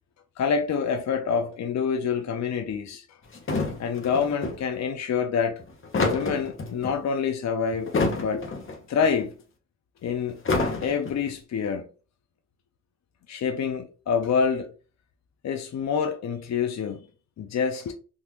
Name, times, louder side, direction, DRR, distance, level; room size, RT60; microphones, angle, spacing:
voice 1, 0.4-3.2 3.8-5.6 6.1-7.9 8.2-8.5 8.9-9.3 10.0-10.4 10.8-11.9 13.3-14.7 15.4-17.1 17.4-17.9, left 6 dB, 55° left, 0.6 m, -27 dB
sound 1, 3.3-4.6 5.6-7.0 7.7-8.8 9.0-9.1 10.3-11.3, left 3 dB, 40° left, 0.9 m, -27 dB
3.7 x 2.4 x 2.9 m
cardioid pair, 110°, 32 cm